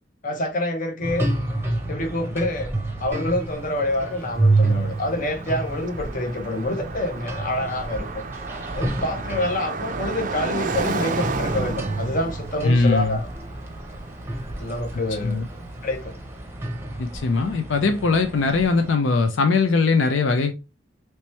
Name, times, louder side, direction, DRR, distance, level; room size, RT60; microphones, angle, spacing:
voice 1, 0.2-1.3 1.9-8.2 8.7-13.3 14.6-15.4 15.8-16.1, left 1 dB, 45° left, 0.8 m, -27 dB
sound 1, 1.0-18.9, right 2 dB, 15° right, 0.7 m, -29 dB
Car passing by, 3.5-15.6, right 4 dB, 45° right, 0.4 m, -33 dB
voice 2, 12.6-13.2 15.2-15.5 17.0-20.5, left 4 dB, 85° left, 0.5 m, -20 dB
3.2 x 3.0 x 3.1 m
head